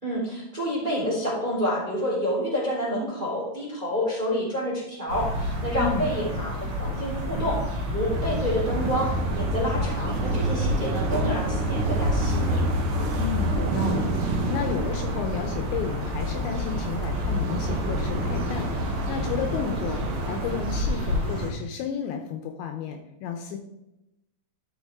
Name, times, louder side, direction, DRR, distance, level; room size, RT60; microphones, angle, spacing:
voice 1, 0.0-7.6 7.9-12.6, equal, 10° right, -4 dB, 2.8 m, -28 dB
sound 1, 5.1-21.5, equal, 45° right, 3.2 m, -30 dB
voice 2, 5.8-6.1 13.2-23.6, left 7 dB, 80° left, 5 dB, 2.8 m, -32 dB
sound 2, 8.1-20.8, right 2 dB, 75° right, 2.3 m, -29 dB
12.0 x 6.5 x 3.6 m, 0.90 s
omnidirectional pair, 5.6 m